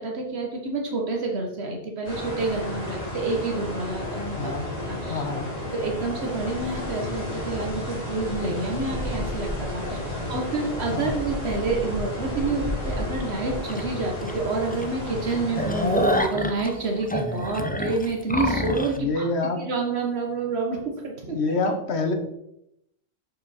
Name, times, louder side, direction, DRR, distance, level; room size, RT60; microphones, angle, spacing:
voice 1, 0.0-4.5 4.9-5.2 5.7-10.0 10.3-19.3 19.6-21.4, right 3 dB, 75° right, 1 dB, 1.3 m, -28 dB
sound 1, 2.0-16.2, left 1 dB, 35° left, 3.1 m, -32 dB
voice 2, 4.4-4.7 5.1-5.5 9.8-10.2 10.9-11.1 18.9-19.6 21.2-22.1, left 3 dB, 80° left, 6 dB, 1.3 m, -27 dB
sound 2, 13.7-13.8 14.3-14.4 14.7-14.8 15.2-19.0, equal, 15° left, 0.4 m, -26 dB
6.9 x 5.5 x 4.2 m, 0.80 s
omnidirectional pair, 1.1 m